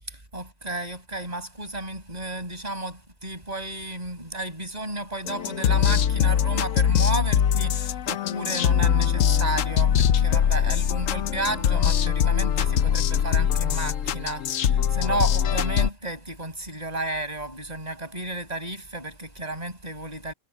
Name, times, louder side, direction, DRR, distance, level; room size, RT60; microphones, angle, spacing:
voice 1, 0.1-20.3, right 2 dB, 30° right, 6.6 m, -32 dB
sound 1, 5.3-15.9, left 9 dB, 85° left, 1.1 m, -22 dB
omnidirectional pair, 1.3 m